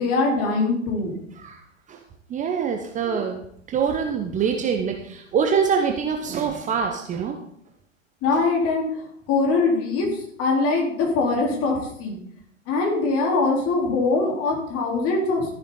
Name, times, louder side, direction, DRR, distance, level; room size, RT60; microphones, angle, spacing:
voice 1, 0.0-1.2 3.0-3.2 8.2-12.2 12.7-15.5, left 3 dB, 35° left, 0 dB, 3.8 m, -23 dB
voice 2, 2.3-3.4 3.7-7.3, right 6 dB, 20° right, 4 dB, 1.0 m, -24 dB
13.5 x 10.5 x 3.9 m, 0.70 s
figure-of-eight pair, 100°, 39 cm